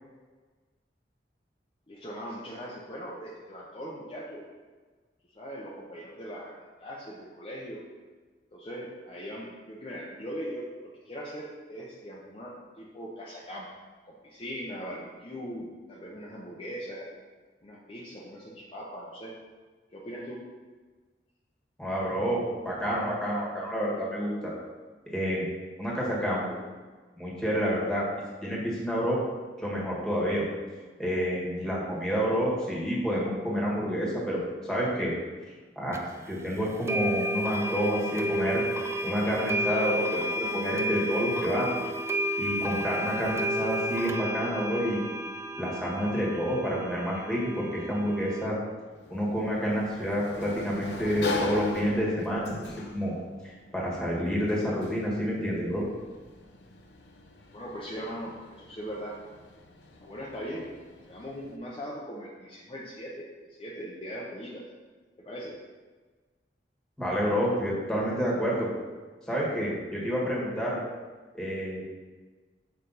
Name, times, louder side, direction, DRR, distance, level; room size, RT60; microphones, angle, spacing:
voice 1, 1.9-4.4 5.3-6.5 6.8-7.8 8.5-10.7 11.0-13.7 14.0-17.1 17.6-19.3 19.9-20.4 57.5-59.2 60.0-60.7 61.1-63.3 63.6-64.6 65.2-65.5, equal, 30° left, -5 dB, 0.8 m, -40 dB
voice 2, 21.8-24.5 25.1-25.4 25.8-26.4 27.2-28.1 28.4-29.2 29.6-30.4 31.0-35.1 35.7-36.0 36.3-38.6 39.0-41.7 42.4-45.0 45.6-48.6 49.1-52.5 52.9-53.1 53.7-55.8 67.0-68.7 69.3-70.8 71.3-71.9, equal, 5° left, -5 dB, 1.7 m, -29 dB
sound 1, 35.9-36.0 36.9-48.5, equal, 15° right, 0.4 m, -32 dB
Sliding door, 48.9-61.6, left 3 dB, 75° left, 0.7 m, -40 dB
6.6 x 5.2 x 4.1 m, 1.4 s
head